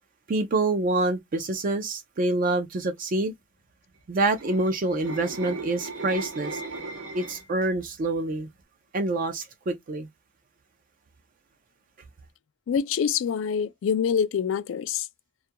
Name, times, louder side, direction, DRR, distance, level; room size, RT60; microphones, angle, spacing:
voice 1, 0.3-3.3 4.1-6.6 7.1-8.5 8.9-10.1, right 2 dB, 45° right, 0.4 m, -26 dB
sound 1, 4.3-7.6 8.0-8.3, right 3 dB, 90° right, 0.7 m, -37 dB
voice 2, 12.7-15.1, left 7 dB, 80° left, 0.3 m, -25 dB
2.3 x 2.2 x 2.7 m
head